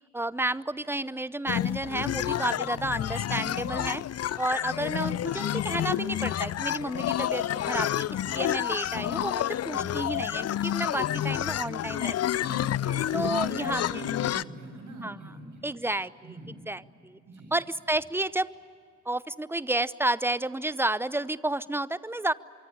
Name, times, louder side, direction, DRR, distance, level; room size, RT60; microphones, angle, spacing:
voice 1, 0.1-4.0 4.4-12.2 13.1-14.0 15.0-15.3 15.6-16.4 16.7-17.2 17.5-18.5 19.1-22.3, right 2 dB, 5° right, 19 dB, 0.8 m, -31 dB
sound 1, 1.5-14.4, left 11 dB, 45° left, 0.6 m, -29 dB
voice 2, 12.4-15.7 16.2-16.5 17.3-17.5, right 2 dB, 55° right, 2 dB, 7.5 m, -43 dB
25.5 x 24.0 x 8.5 m, 2.4 s
hypercardioid pair, 40°, 37 cm